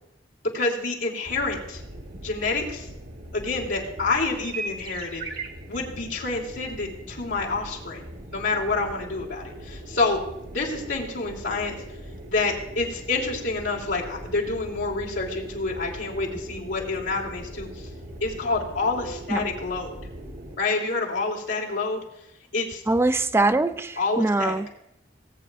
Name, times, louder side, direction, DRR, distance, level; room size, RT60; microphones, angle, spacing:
voice 1, 0.5-1.8 2.2-2.9 3.3-5.2 5.7-8.0 8.3-10.2 10.5-11.8 12.3-17.9 18.2-20.0 20.6-22.0 22.5-22.8 24.0-24.5, left 3 dB, 90° left, 3.1 m, -28 dB
sound 1, 1.2-20.6, right 1 dB, 55° right, 1.3 m, -40 dB
voice 2, 22.9-24.7, right 2 dB, 15° right, 0.3 m, -23 dB
19.0 x 8.9 x 2.5 m
head